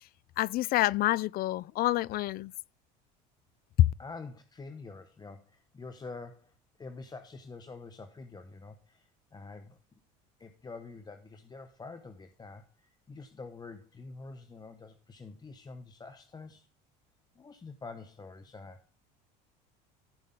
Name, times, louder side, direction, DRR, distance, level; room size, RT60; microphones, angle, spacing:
voice 1, 0.4-2.5 3.8-3.9, left 15 dB, 50° left, 0.4 m, -26 dB
voice 2, 4.0-6.5 6.8-10.0 10.4-16.7 17.3-18.8, left 3 dB, 20° left, 0.9 m, -47 dB
15.0 x 5.4 x 3.7 m
supercardioid pair, 95°, 20 cm